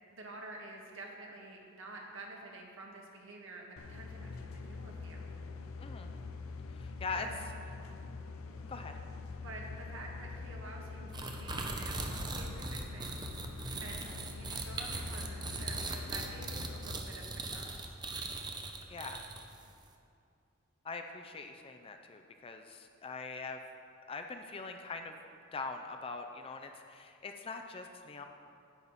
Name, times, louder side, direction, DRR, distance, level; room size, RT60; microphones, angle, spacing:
voice 1, 0.1-5.2 7.1-7.4 8.5-8.6 9.4-13.2 13.8-17.7, right 2 dB, 65° right, -1 dB, 1.6 m, -49 dB
sound 1, 3.8-17.0, left 4 dB, 80° left, 0.6 m, -45 dB
voice 2, 6.7-7.3 8.7-8.9 13.9-14.2 18.9-19.2 20.8-23.6 24.1-25.2 25.5-28.2, left 4 dB, 25° left, 5 dB, 0.4 m, -42 dB
sound 2, 11.1-19.6, right 3 dB, 20° right, 0.7 m, -40 dB
10.5 x 8.6 x 4.1 m, 2.4 s
head